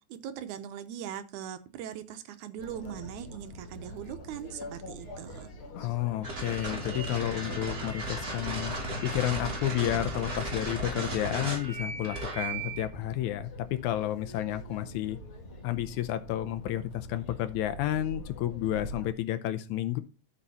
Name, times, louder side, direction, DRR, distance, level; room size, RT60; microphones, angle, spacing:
voice 1, 0.1-5.5, right 9 dB, 75° right, 2.2 m, -40 dB
sound 1, 2.6-19.1, left 1 dB, 45° left, 2.6 m, -44 dB
voice 2, 5.7-15.2 15.6-20.0, left 13 dB, 80° left, 2.1 m, -31 dB
sound 2, 6.2-12.9, right 2 dB, 30° right, 3.5 m, -35 dB
12.5 x 5.5 x 4.2 m
omnidirectional pair, 3.6 m